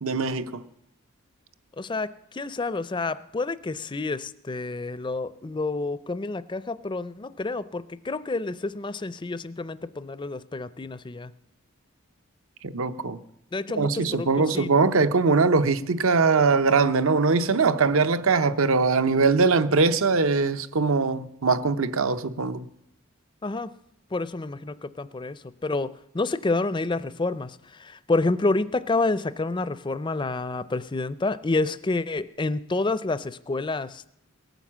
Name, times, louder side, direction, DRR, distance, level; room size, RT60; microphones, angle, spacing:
voice 1, 0.0-0.6 12.6-13.2 13.8-22.6, right 4 dB, 75° right, 0.8 m, -22 dB
voice 2, 1.8-11.3 13.5-14.3 14.5-14.7 23.4-23.7 24.1-34.1, left 3 dB, 20° left, 0.5 m, -29 dB
18.0 x 9.3 x 7.3 m
head